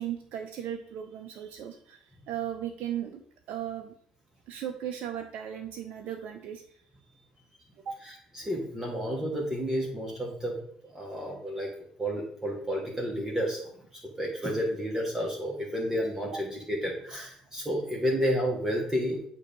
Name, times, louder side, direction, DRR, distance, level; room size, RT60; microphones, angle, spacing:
voice 1, 0.0-3.2 3.5-3.9 4.5-6.8 7.7-8.0 16.3-16.4, right 10 dB, 60° right, 6 dB, 0.5 m, -36 dB
voice 2, 8.1-11.7 12.0-13.6 13.9-19.2, equal, 15° right, -2 dB, 1.5 m, -31 dB
8.2 x 2.8 x 5.2 m, 0.64 s
figure-of-eight pair, 50°, 3 cm